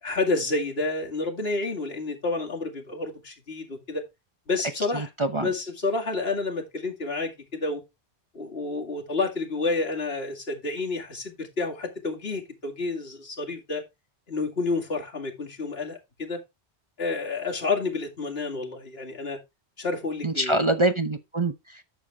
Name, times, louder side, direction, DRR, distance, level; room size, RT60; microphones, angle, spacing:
voice 1, 0.0-4.0 4.5-5.1 5.4-7.8 8.3-13.8 14.3-16.4 17.0-19.4 19.8-20.6, left 3 dB, 65° left, 2.5 m, -29 dB
voice 2, 4.9-5.5 20.2-21.9, right 2 dB, 30° right, 0.7 m, -25 dB
10.0 x 7.1 x 3.4 m
omnidirectional pair, 1.1 m